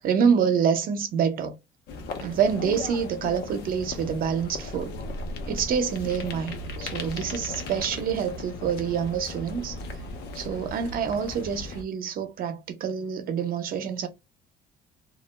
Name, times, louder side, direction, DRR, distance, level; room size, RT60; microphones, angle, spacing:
voice 1, 0.0-1.6 2.2-5.0 5.5-9.8 10.4-14.1, right 7 dB, 55° right, 0.7 m, -27 dB
sound 1, 1.9-11.8, left 2 dB, 80° left, 0.6 m, -37 dB
2.4 x 2.1 x 3.1 m
cardioid pair, 110°, 17 cm